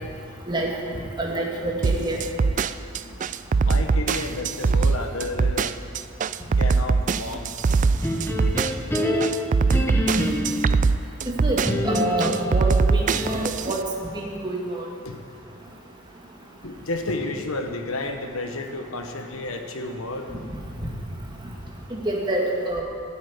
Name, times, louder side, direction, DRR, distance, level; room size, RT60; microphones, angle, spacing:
voice 1, 1.2-2.2 11.3-11.6 11.8-13.8 14.1-14.8 21.9-22.8, right 1 dB, 20° right, -1 dB, 2.0 m, -27 dB
sound 1, 1.8-13.8, right 4 dB, 35° right, 0.3 m, -22 dB
voice 2, 3.6-5.7 6.6-7.5 15.0-15.2 16.6-20.3, left 2 dB, 75° left, 5 dB, 1.4 m, -31 dB
sound 2, 8.0-10.8 11.6-13.6, left 1 dB, 10° left, 1.2 m, -26 dB
12.5 x 8.6 x 9.7 m, 2.4 s
head